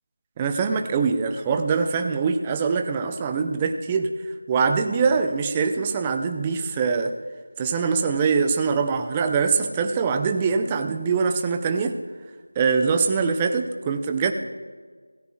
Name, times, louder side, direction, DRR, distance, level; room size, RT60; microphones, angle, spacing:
voice 1, 0.4-7.1 7.6-12.0 12.6-14.3, right 5 dB, 10° right, 6 dB, 0.5 m, -23 dB
17.0 x 14.5 x 2.3 m, 1.5 s
figure-of-eight pair, 170°, 0 cm